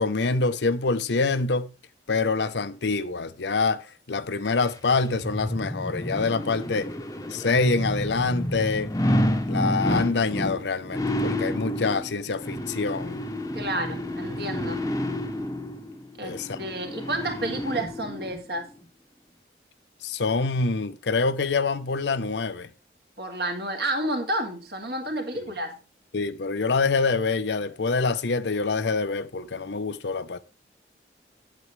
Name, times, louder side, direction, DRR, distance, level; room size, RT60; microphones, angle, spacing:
voice 1, 0.0-1.7 2.1-6.9 7.3-8.9 9.5-13.2 16.2-16.6 20.0-22.7 25.3-25.5 26.1-30.4, left 4 dB, 85° left, 0.7 m, -26 dB
sound 1, 4.5-18.4 18.8-18.9, left 1 dB, 20° left, 0.8 m, -30 dB
voice 2, 13.5-14.8 16.2-18.7 23.2-25.8, right 1 dB, 65° right, 2.1 m, -30 dB
8.5 x 8.3 x 3.2 m
head